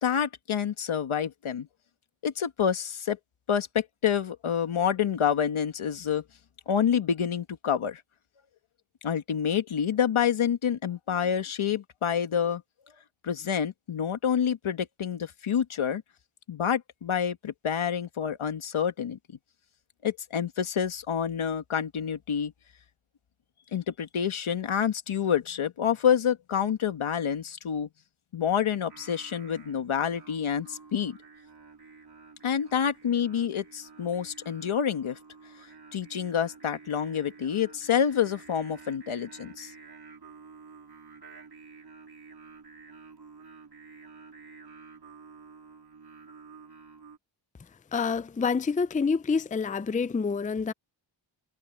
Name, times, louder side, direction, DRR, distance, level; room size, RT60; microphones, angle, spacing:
voice 1, 0.0-1.7 2.2-3.2 3.5-6.2 6.7-8.0 9.0-12.6 13.2-16.0 16.5-19.2 20.0-22.5 23.7-27.9 28.3-31.2 32.4-35.2 35.9-39.7, left 8 dB, 85° left, 1.7 m, -28 dB
Singing, 28.9-47.2, right 4 dB, 50° right, 4.0 m, -51 dB
voice 2, 47.9-50.7, left 5 dB, 15° left, 0.5 m, -27 dB
cardioid pair, 60°, 47 cm